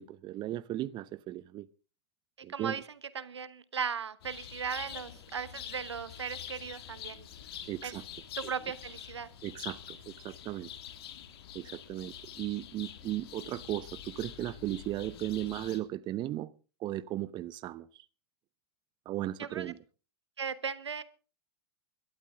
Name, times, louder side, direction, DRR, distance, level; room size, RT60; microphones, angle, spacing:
voice 1, 0.0-1.7 2.4-2.8 7.7-8.0 8.4-8.5 9.4-10.7 11.5-16.5 16.8-18.0 19.1-19.8, right 14 dB, 35° right, 16 dB, 0.7 m, -36 dB
voice 2, 2.5-2.8 3.1-7.3 7.8-8.0 8.3-9.3 19.4-19.7 20.4-21.0, right 6 dB, 90° right, 15 dB, 1.1 m, -37 dB
sound 1, 4.2-15.8, left 10 dB, 65° left, 2.1 m, -46 dB
22.0 x 12.5 x 3.7 m, 0.35 s
hypercardioid pair, 105°, 14 cm